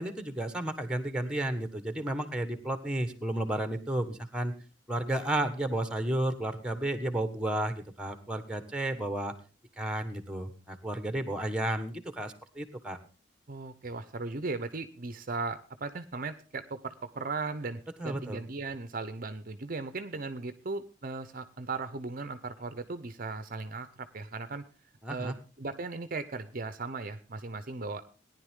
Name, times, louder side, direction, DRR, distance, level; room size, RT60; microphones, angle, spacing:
voice 1, 0.0-4.5 4.9-9.3 9.8-13.0 18.0-18.4 25.0-25.3, right 1 dB, 5° right, 9 dB, 1.4 m, -32 dB
voice 2, 13.5-24.6 25.1-28.0, right 3 dB, 45° right, 11 dB, 0.8 m, -37 dB
18.0 x 10.5 x 3.7 m, 0.34 s
head